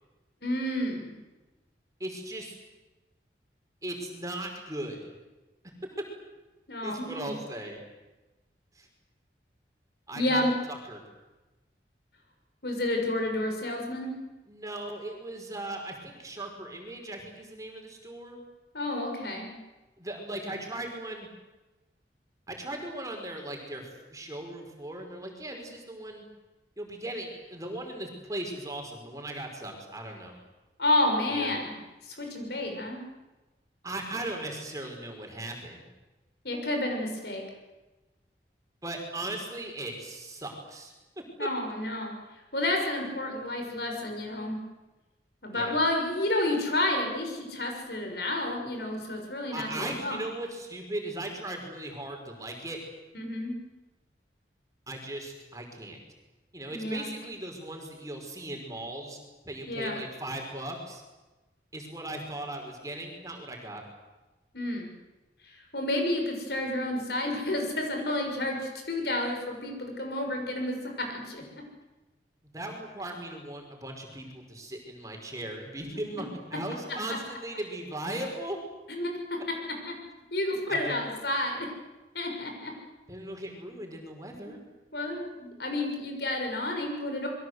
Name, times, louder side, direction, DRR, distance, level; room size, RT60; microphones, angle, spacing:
voice 1, 0.4-1.1 6.7-7.3 10.1-10.5 12.6-14.1 18.7-19.5 30.8-31.7 32.0-33.0 36.4-37.4 41.4-42.1 42.5-44.6 45.4-50.2 53.1-53.5 56.7-57.1 59.7-60.0 64.5-64.9 65.4-71.4 78.9-79.4 79.9-80.0 80.3-81.7 82.1-82.7 84.4-84.5 84.9-87.3, left 1 dB, 65° left, 3 dB, 6.5 m, -30 dB
voice 2, 2.0-2.6 3.8-5.0 6.8-7.8 8.7-8.9 10.1-11.0 14.5-18.4 20.0-21.3 22.5-26.2 26.8-30.3 31.3-31.5 33.8-35.8 38.8-40.9 41.4-41.5 45.5-45.7 49.5-52.8 54.9-56.0 56.5-59.2 59.4-61.0 61.7-63.8 72.5-78.6 80.7-81.0 83.1-84.6, right 1 dB, 20° right, 2 dB, 5.0 m, -38 dB
28.0 x 22.5 x 8.0 m, 1.1 s
head